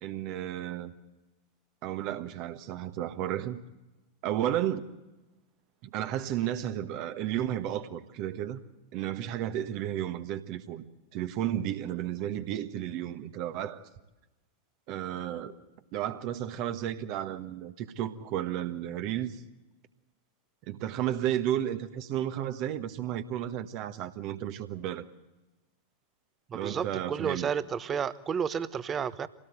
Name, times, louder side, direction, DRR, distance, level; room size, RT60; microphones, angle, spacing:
voice 1, 0.0-0.9 1.8-3.6 4.2-4.9 5.8-8.6 8.9-10.8 11.1-13.9 14.9-15.5 15.9-19.4 20.7-25.0 26.5-27.5, right 11 dB, 45° right, 1.4 m, -33 dB
voice 2, 26.5-29.3, right 7 dB, 25° right, 1.0 m, -31 dB
26.5 x 18.0 x 8.0 m
figure-of-eight pair, 90°, 0 cm